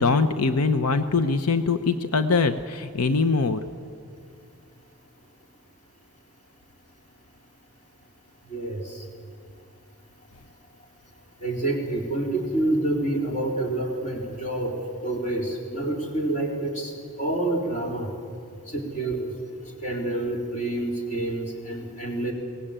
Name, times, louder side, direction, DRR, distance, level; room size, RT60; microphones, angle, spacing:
voice 1, 0.0-3.6, left 4 dB, 90° left, 10 dB, 0.8 m, -22 dB
voice 2, 8.5-9.0 11.4-14.8 15.0-16.9 17.2-18.1 18.7-19.3 19.8-22.3, right 2 dB, 35° left, 0 dB, 4.0 m, -27 dB
23.0 x 18.5 x 8.9 m, 2.4 s
head